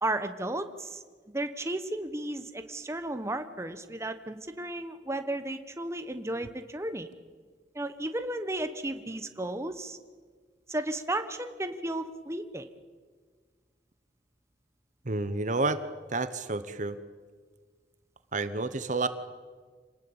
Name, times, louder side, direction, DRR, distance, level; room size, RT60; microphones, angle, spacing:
voice 1, 0.0-1.0 1.3-7.1 7.7-10.0 10.7-12.7, right 1 dB, 15° right, 8 dB, 1.2 m, -34 dB
voice 2, 15.0-15.8 16.1-17.0 18.3-19.1, right 3 dB, 45° right, 12 dB, 1.0 m, -29 dB
27.5 x 19.0 x 8.8 m, 1.5 s
head